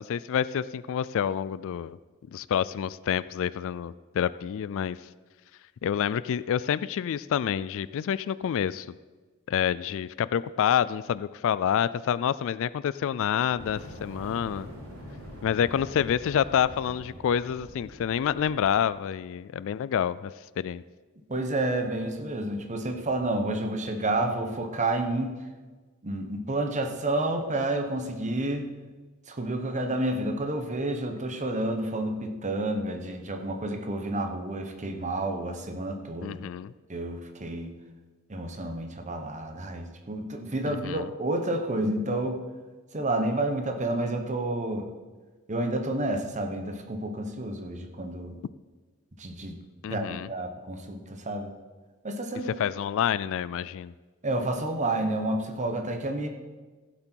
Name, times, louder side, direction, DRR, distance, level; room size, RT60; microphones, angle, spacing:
voice 1, 0.0-2.0 2.3-5.0 5.8-8.9 9.5-14.7 15.4-20.8 36.2-36.7 40.7-41.1 49.8-50.3 52.6-53.9, left 8 dB, 65° left, 18 dB, 0.3 m, -28 dB
Fire, 13.4-18.7, equal, 85° right, 3.1 m, -44 dB
voice 2, 21.3-25.3 26.0-28.7 29.3-36.4 36.9-37.7 38.3-42.4 42.9-44.9 45.5-48.4 49.2-49.6 49.9-51.5 52.0-52.6 54.2-56.3, right 2 dB, 35° right, 5 dB, 1.1 m, -30 dB
15.5 x 7.8 x 4.6 m, 1.3 s
head